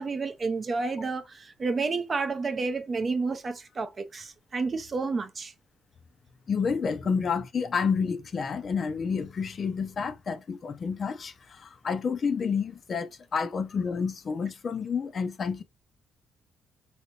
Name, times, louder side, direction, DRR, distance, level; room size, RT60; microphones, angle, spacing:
voice 1, 0.0-5.5, right 4 dB, 30° right, 0.5 m, -30 dB
voice 2, 6.5-15.6, left 5 dB, 40° left, 0.5 m, -29 dB
3.3 x 2.7 x 2.9 m
cardioid pair, 140°, 0 cm